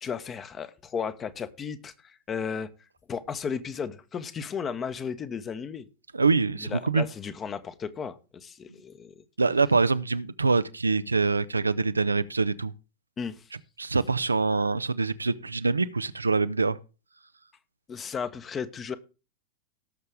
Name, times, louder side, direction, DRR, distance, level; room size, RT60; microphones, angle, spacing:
voice 1, 0.0-2.7 3.1-5.8 6.6-9.2 13.2-13.4 17.9-19.0, left 6 dB, 25° left, 1.1 m, -34 dB
voice 2, 6.1-7.0 9.4-12.7 13.8-16.8, right 4 dB, 80° right, 0.6 m, -25 dB
18.0 x 6.7 x 3.5 m
figure-of-eight pair, 90°, 0 cm